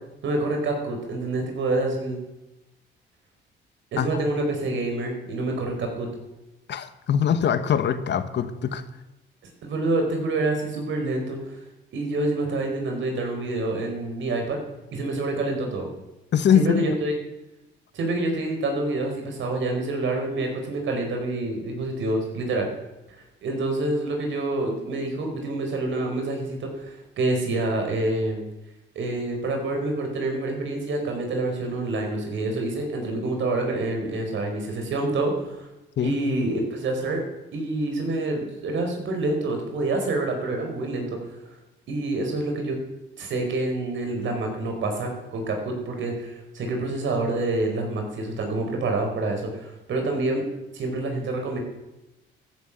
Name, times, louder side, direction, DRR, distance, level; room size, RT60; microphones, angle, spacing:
voice 1, 0.2-2.2 3.9-6.1 9.6-11.6 11.9-14.6 14.9-15.9 16.5-17.1 17.9-22.7 23.1-28.4 28.9-35.6 36.0-37.2 37.5-41.1 41.9-42.8 43.2-50.4 50.7-51.6, right 2 dB, 70° right, 3 dB, 4.9 m, -27 dB
voice 2, 6.7-8.8 16.3-16.9 36.0-36.1, left 8 dB, 60° left, 11 dB, 1.3 m, -22 dB
14.5 x 10.5 x 7.5 m, 0.99 s
cardioid pair, 90°, 20 cm